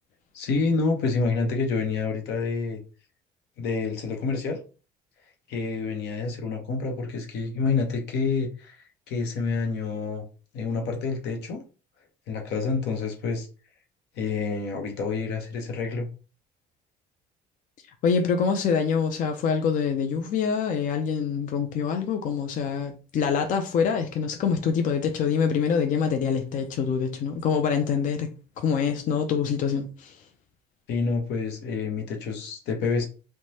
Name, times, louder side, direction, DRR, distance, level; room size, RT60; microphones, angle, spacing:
voice 1, 0.3-2.8 3.6-4.6 5.5-8.8 9.1-10.2 10.5-11.6 12.3-13.5 14.2-16.1 30.9-33.1, left 4 dB, 80° left, 0.8 m, -28 dB
voice 2, 18.0-28.3 28.6-30.2, left 6 dB, 50° left, 0.4 m, -25 dB
3.1 x 2.1 x 2.7 m
cardioid pair, 110°, 17 cm